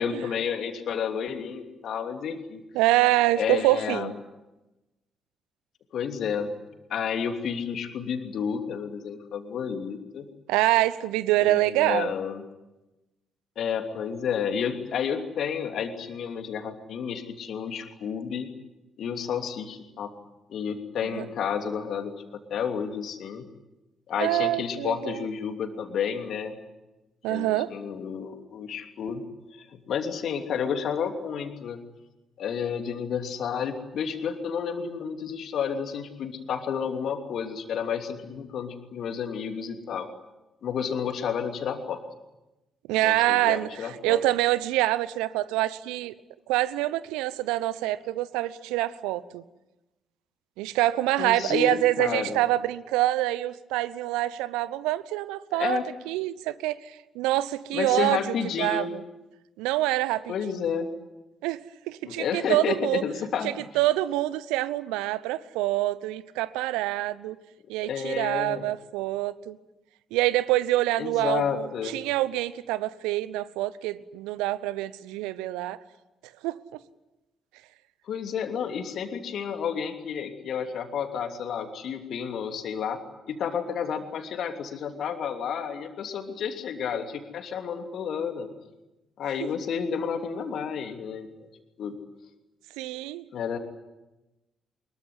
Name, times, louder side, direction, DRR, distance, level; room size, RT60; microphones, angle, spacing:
voice 1, 0.0-2.6 3.3-4.1 5.9-6.5 6.9-10.3 11.4-12.4 13.6-18.5 19.0-20.1 20.5-23.4 24.1-26.5 27.3-29.2 29.5-31.8 32.4-40.1 40.6-42.0 43.0-44.2 51.2-52.4 55.5-55.8 57.7-58.9 60.3-60.9 62.0-63.5 67.8-68.7 71.0-72.0 78.1-83.0 83.3-88.5 89.2-91.5 91.8-92.0 93.3-93.6, left 7 dB, 60° left, 6 dB, 3.0 m, -31 dB
voice 2, 2.7-4.1 10.5-12.1 21.1-21.2 24.2-25.2 27.2-27.7 42.9-46.1 46.5-49.4 50.6-55.8 56.1-58.2 58.6-58.8 59.6-60.6 61.4-63.0 63.4-67.4 67.7-69.6 70.1-75.8 76.4-76.6 89.4-89.5 92.8-93.2, right 16 dB, 70° right, 17 dB, 0.9 m, -26 dB
24.0 x 22.5 x 9.6 m, 1.0 s
figure-of-eight pair, 40°, 0 cm